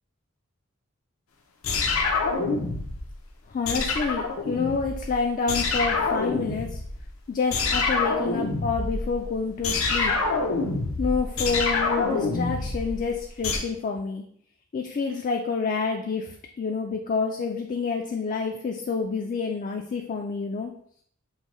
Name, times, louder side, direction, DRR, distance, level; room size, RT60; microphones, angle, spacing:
sound 1, 1.6-3.2 3.6-5.2 5.5-7.1 7.5-13.6, left 3 dB, 90° left, 0.6 m, -26 dB
voice 1, 3.5-6.8 7.3-10.1 11.0-14.2 14.7-20.7, left 4 dB, 40° left, 2 dB, 0.3 m, -28 dB
5.4 x 2.2 x 3.0 m, 0.63 s
head